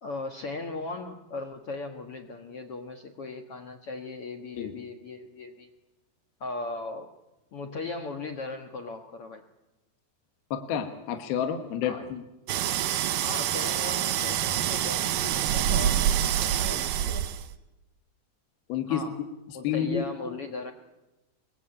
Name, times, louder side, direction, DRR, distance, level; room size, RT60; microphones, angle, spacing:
voice 1, 0.0-5.7 6.4-7.1 7.5-9.4 11.8-12.1 13.1-17.3 18.9-19.3 19.5-20.7, left 3 dB, 90° left, 4 dB, 1.2 m, -38 dB
voice 2, 10.5-12.2 18.7-19.0 19.6-20.0, left 8 dB, 70° left, 6 dB, 3.2 m, -29 dB
sound 1, 12.5-17.5, right 10 dB, 75° right, 2.1 m, -26 dB
23.5 x 21.5 x 8.7 m, 1.0 s
omnidirectional pair, 4.9 m